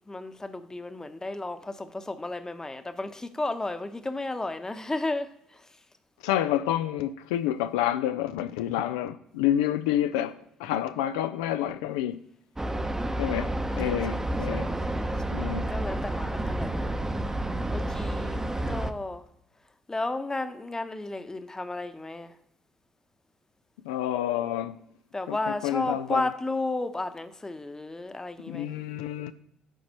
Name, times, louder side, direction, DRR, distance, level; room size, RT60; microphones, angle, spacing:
voice 1, 0.1-5.8 12.6-13.1 13.8-16.7 17.7-19.2 19.9-22.3 25.1-28.7, left 2 dB, 15° left, 0.9 m, -33 dB
voice 2, 6.2-12.2 13.2-14.7 15.3-15.7 23.8-24.8 25.3-26.3 28.5-29.3, left 12 dB, 75° left, 0.4 m, -29 dB
sound 1, 12.6-18.9, right 1 dB, 15° right, 0.8 m, -30 dB
12.5 x 5.1 x 2.9 m
figure-of-eight pair, 50°, 3 cm